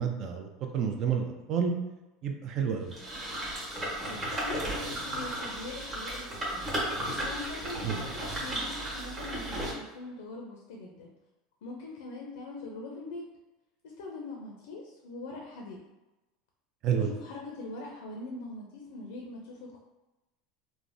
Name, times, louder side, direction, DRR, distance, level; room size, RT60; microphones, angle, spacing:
voice 1, 0.0-1.7 2.2-2.9 7.8-7.9 16.8-17.1, right 7 dB, 50° right, 3 dB, 0.4 m, -29 dB
sound 1, 2.9-9.7, right 1 dB, 20° right, 1.1 m, -34 dB
voice 2, 4.0-6.7 7.2-11.1 11.6-13.3 13.8-15.8 16.9-19.8, left 2 dB, 85° left, -1 dB, 0.5 m, -42 dB
3.3 x 2.0 x 2.5 m, 1.0 s
supercardioid pair, 115°, 0 cm